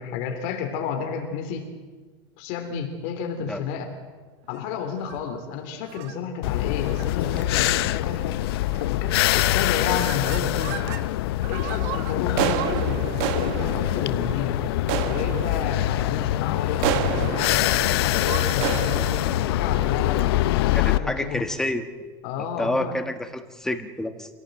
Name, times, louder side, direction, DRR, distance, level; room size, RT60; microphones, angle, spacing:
voice 1, 0.0-1.7 2.4-4.0 4.5-8.4 8.9-10.8 11.5-13.0 13.3-14.6 15.0-20.3 20.7-21.5 22.2-22.9, left 7 dB, 65° left, 5 dB, 3.2 m, -31 dB
sound 1, 5.0-5.4 5.9-6.2 6.8-7.1 7.4-7.5 7.8-8.2 8.7-9.1 9.4-11.0 11.4-20.6, right 11 dB, 65° right, 1.6 m, -32 dB
sound 2, 6.4-21.0, left 15 dB, 90° left, 0.7 m, -24 dB
voice 2, 20.7-21.8 22.6-24.3, left 1 dB, 5° left, 7 dB, 1.7 m, -28 dB
26.0 x 17.5 x 7.9 m, 1.4 s
supercardioid pair, 145°, 12 cm